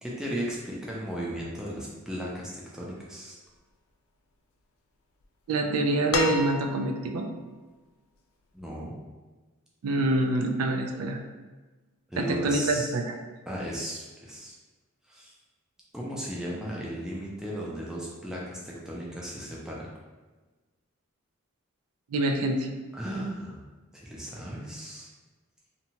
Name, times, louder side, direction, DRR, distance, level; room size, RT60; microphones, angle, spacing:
voice 1, 0.0-3.4 8.5-9.0 12.1-12.9 13.5-14.5 15.1-15.3 15.9-19.9 22.9-23.6 23.9-25.1, right 1 dB, 5° right, -5 dB, 0.4 m, -35 dB
voice 2, 5.5-7.3 9.8-11.2 12.2-13.1 22.1-22.7, right 2 dB, 80° right, 4 dB, 0.3 m, -26 dB
sound 1, 6.1-7.1 8.6-8.7, left 4 dB, 80° left, 0.3 m, -30 dB
2.8 x 2.2 x 2.8 m, 1.3 s
head